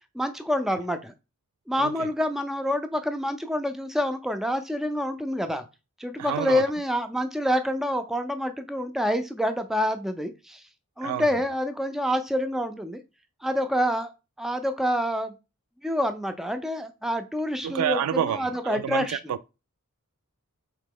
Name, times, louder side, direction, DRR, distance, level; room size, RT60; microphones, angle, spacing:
voice 1, 0.1-1.1 1.7-5.6 6.0-10.6 11.0-13.0 13.4-14.1 14.4-15.4 15.8-19.3, equal, ahead, 0.3 m, -27 dB
voice 2, 1.8-2.1 6.2-6.6 11.0-11.4 17.6-19.5, right 9 dB, 85° right, 0.3 m, -29 dB
3.6 x 2.9 x 3.7 m
head